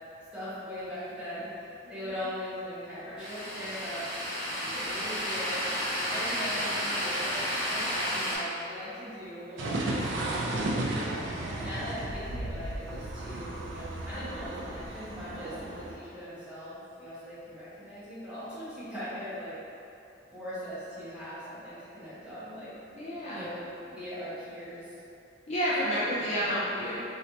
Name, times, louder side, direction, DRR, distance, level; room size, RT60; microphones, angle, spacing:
voice 1, 0.3-4.0 4.6-5.6 5.9-7.4 7.6-19.5 20.3-22.7 23.3-23.6 23.9-24.9 25.8-26.3 26.8-27.0, equal, 5° right, -15 dB, 1.2 m, -40 dB
voice 2, 1.8-2.3 4.7-5.1 11.8-12.0 22.9-23.5 25.5-27.0, equal, 35° left, -9 dB, 0.4 m, -31 dB
sound 1, 3.2-8.4, equal, 60° left, 1.4 m, -32 dB
sound 2, 9.6-15.9, right 1 dB, 80° right, 0.4 m, -34 dB
3.1 x 2.7 x 2.8 m, 2.7 s
head